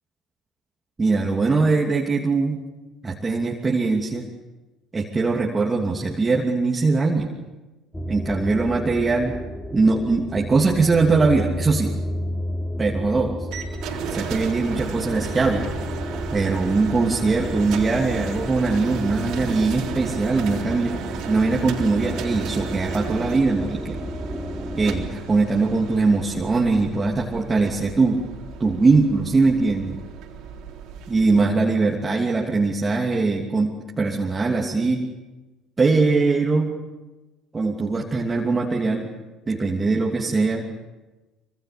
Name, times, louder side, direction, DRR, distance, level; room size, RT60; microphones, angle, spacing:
voice 1, 1.0-2.6 3.0-4.3 4.9-7.3 8.1-9.4 9.7-12.0 12.8-13.4 14.1-15.7 16.3-20.9 21.3-24.1 24.8-28.2 28.6-30.0 31.1-35.1 35.8-36.7 37.5-39.1 39.5-40.7, right 3 dB, 25° right, -1 dB, 2.9 m, -21 dB
sound 1, 7.9-25.1, equal, 10° left, 3.3 m, -32 dB
sound 2, 13.5-31.4, right 7 dB, 60° right, 3.7 m, -35 dB
26.5 x 25.0 x 7.0 m, 1.1 s
figure-of-eight pair, 55°, 0 cm